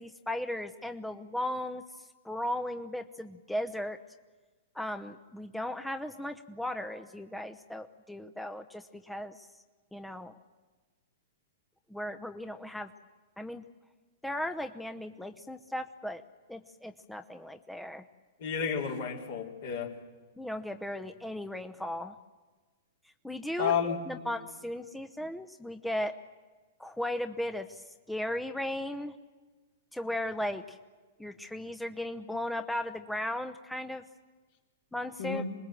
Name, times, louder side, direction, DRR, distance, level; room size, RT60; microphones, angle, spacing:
voice 1, 0.0-1.8 2.2-4.0 4.7-9.5 9.9-10.3 11.9-12.9 13.4-13.6 14.2-16.2 16.5-18.0 20.4-22.1 23.2-26.2 26.8-27.8 28.1-29.1 29.9-30.8 31.2-34.0 34.9-35.4, left 1 dB, 5° left, 7 dB, 0.9 m, -36 dB
voice 2, 18.4-19.9 23.6-24.0 35.2-35.4, left 7 dB, 65° left, 1 dB, 3.8 m, -31 dB
26.5 x 20.0 x 7.6 m, 1.3 s
figure-of-eight pair, 110°, 0 cm